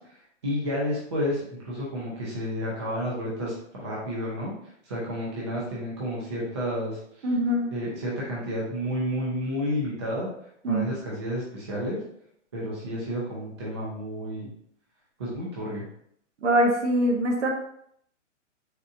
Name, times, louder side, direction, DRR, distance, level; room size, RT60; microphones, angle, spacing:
voice 1, 0.4-4.5 4.8-7.3 7.7-10.3 10.7-12.0 12.5-14.5 15.2-15.8, equal, 20° right, -6 dB, 0.5 m, -31 dB
voice 2, 7.2-7.7 10.6-11.0 16.4-17.5, right 1 dB, 65° right, 2 dB, 1.0 m, -23 dB
4.1 x 2.5 x 2.5 m, 0.70 s
hypercardioid pair, 165°, 38 cm